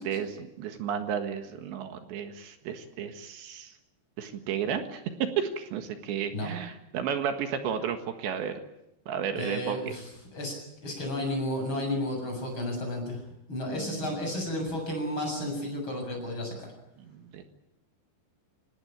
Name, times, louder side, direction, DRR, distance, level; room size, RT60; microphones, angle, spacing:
voice 1, 0.0-3.7 4.2-8.5 9.1-9.9 13.7-14.2 17.0-17.4, right 8 dB, 75° right, 7 dB, 3.9 m, -33 dB
voice 2, 9.4-10.0 10.3-10.6 10.8-13.2 13.5-16.6, left 1 dB, 25° left, 2 dB, 8.0 m, -32 dB
26.5 x 19.0 x 9.0 m, 0.86 s
omnidirectional pair, 5.2 m